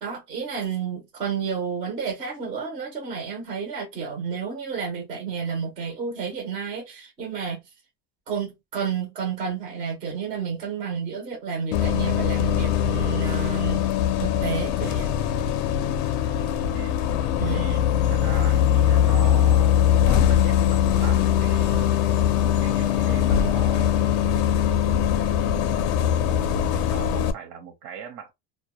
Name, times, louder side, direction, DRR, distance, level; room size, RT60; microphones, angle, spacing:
voice 1, 0.0-7.6 8.3-13.9 14.2-15.1 17.4-17.7, right 5 dB, 15° right, 0.3 m, -30 dB
Bus, 11.7-27.3, left 10 dB, 60° left, 0.5 m, -21 dB
voice 2, 16.7-17.0 17.5-21.9 22.6-24.2 25.4-26.6 26.9-28.3, right 8 dB, 80° right, 0.8 m, -40 dB
2.2 x 2.0 x 2.8 m
cardioid pair, 160°, 46 cm